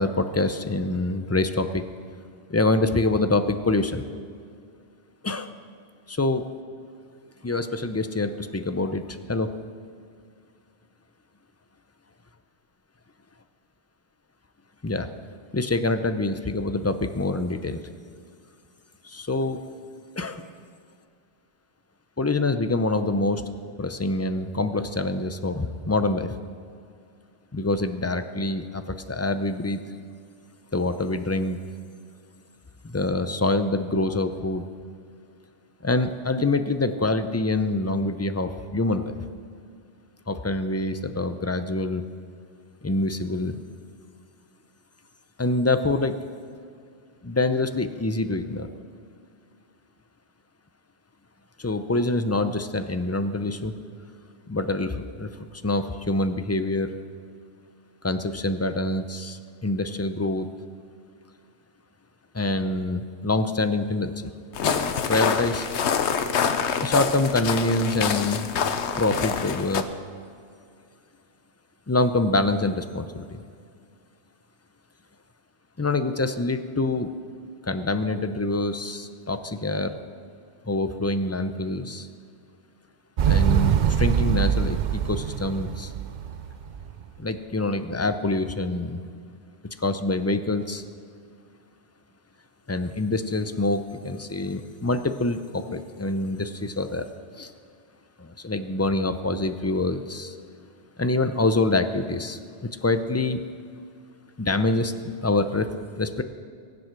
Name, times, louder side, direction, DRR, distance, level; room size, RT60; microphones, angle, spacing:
voice 1, 0.0-1.9 2.5-4.1 5.2-5.5 6.1-6.4 7.4-9.5 14.8-15.1 15.5-17.8 19.0-19.6 20.2-20.4 22.2-23.4 23.8-26.3 27.5-29.8 30.7-31.6 32.8-34.6 35.8-39.2 40.3-42.0 42.8-43.6 45.4-46.1 47.2-48.7 51.6-53.7 54.5-55.3 55.6-56.9 58.0-60.5 62.3-64.3 64.6-65.7 66.8-68.5 69.0-69.8 71.9-73.4 75.8-77.1 77.7-79.9 80.7-82.1 83.3-85.9 87.2-89.0 89.8-90.8 92.7-97.1 97.4-97.5 98.2-100.3 101.0-103.4 104.4-104.9 105.2-105.7 106.0-106.2, left 2 dB, 20° left, 9 dB, 0.4 m, -25 dB
sound 1, 64.5-69.8, left 7 dB, 75° left, 1.1 m, -26 dB
Motorcycle, 83.2-87.1, right 8 dB, 55° right, 0.6 m, -24 dB
22.5 x 7.9 x 5.9 m, 2.3 s
omnidirectional pair, 1.2 m